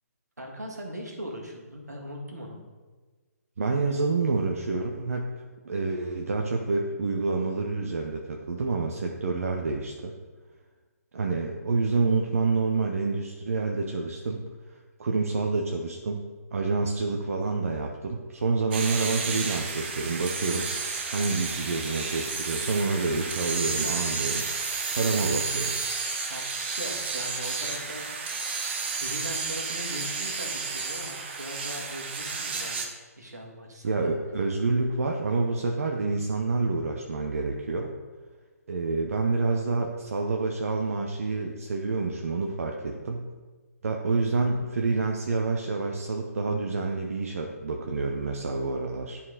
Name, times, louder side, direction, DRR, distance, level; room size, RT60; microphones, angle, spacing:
voice 1, 0.4-2.6 26.3-28.1 28.3-28.6 29.0-32.9 33.2-34.1, equal, 80° right, 0 dB, 1.8 m, -39 dB
voice 2, 3.6-10.1 11.1-14.4 14.7-16.2 16.5-20.7 21.1-24.4 24.9-25.7 33.8-37.9 38.7-43.2 43.8-49.2, right 3 dB, 60° right, 1 dB, 0.8 m, -28 dB
sound 1, 18.7-32.9, right 4 dB, 40° right, 1.0 m, -32 dB
sound 2, 20.5-26.6, left 4 dB, 50° left, 1.4 m, -48 dB
10.5 x 4.2 x 3.8 m, 1.4 s
figure-of-eight pair, 135°, 9 cm